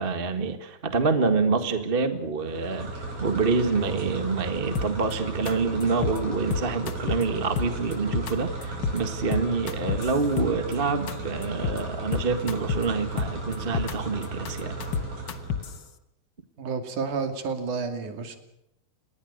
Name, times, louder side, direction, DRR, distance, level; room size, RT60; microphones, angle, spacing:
voice 1, 0.0-14.8, right 4 dB, 25° right, 8 dB, 1.4 m, -27 dB
sound 1, 2.4-15.8, right 3 dB, 70° right, 9.0 m, -35 dB
sound 2, 4.7-5.1 5.5-5.6 5.8-6.2 6.5-7.2 7.6-8.3 8.6-9.0 9.3-10.7 11.1-11.2 11.4-11.8 12.1-12.8 13.2-13.9 14.2-15.8, left 6 dB, 50° left, 1.4 m, -29 dB
voice 2, 16.6-18.4, right 5 dB, 90° right, 7 dB, 4.1 m, -30 dB
28.0 x 20.5 x 6.6 m, 0.80 s
omnidirectional pair, 3.4 m